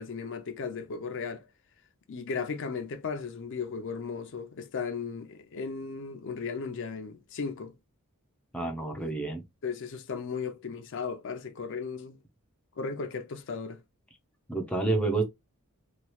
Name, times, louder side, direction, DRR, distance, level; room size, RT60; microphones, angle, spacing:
voice 1, 0.0-1.4 2.1-7.7 9.0-9.1 9.6-12.2 12.8-13.8, left 5 dB, 55° left, 0.5 m, -36 dB
voice 2, 8.5-9.4 14.5-15.2, right 3 dB, 5° left, 0.5 m, -29 dB
3.0 x 2.3 x 3.0 m
head